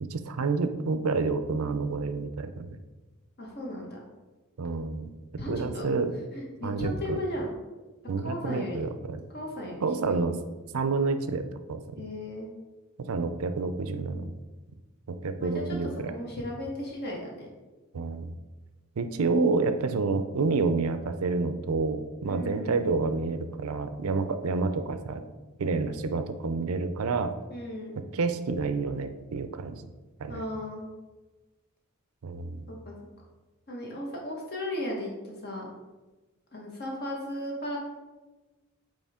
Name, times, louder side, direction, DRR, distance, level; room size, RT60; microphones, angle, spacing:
voice 1, 0.0-2.8 4.6-5.1 5.5-6.1 6.6-7.2 8.1-9.2 9.8-10.4 10.7-11.8 13.0-14.3 15.1-16.1 17.9-18.3 19.0-25.2 25.6-27.3 27.9-29.8 30.2-30.4 32.2-32.7, right 4 dB, 80° right, 9 dB, 0.5 m, -29 dB
voice 2, 3.4-4.0 5.4-5.9 6.3-7.5 8.2-8.8 9.3-10.2 12.0-12.5 15.4-15.8 16.1-17.5 22.2-22.8 27.5-28.0 30.3-30.9 32.7-32.9 33.7-35.1 35.4-35.7 36.5-37.8, left 1 dB, 45° left, -2 dB, 1.4 m, -35 dB
8.4 x 3.2 x 3.6 m, 1.2 s
head